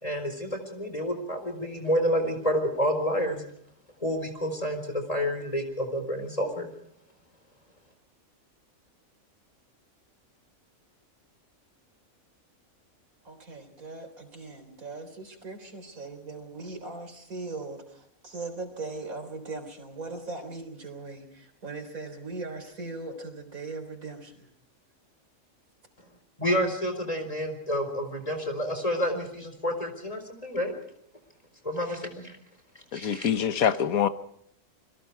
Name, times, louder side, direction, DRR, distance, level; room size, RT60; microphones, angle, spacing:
voice 1, 0.0-3.4 4.0-6.7 26.4-30.7 31.6-32.4 32.9-33.3, equal, 25° left, 4.2 m, -29 dB
voice 2, 13.2-24.5, right 3 dB, 80° right, 4.2 m, -39 dB
voice 3, 32.9-34.1, left 8 dB, 85° left, 1.5 m, -25 dB
29.0 x 22.0 x 4.7 m
omnidirectional pair, 1.4 m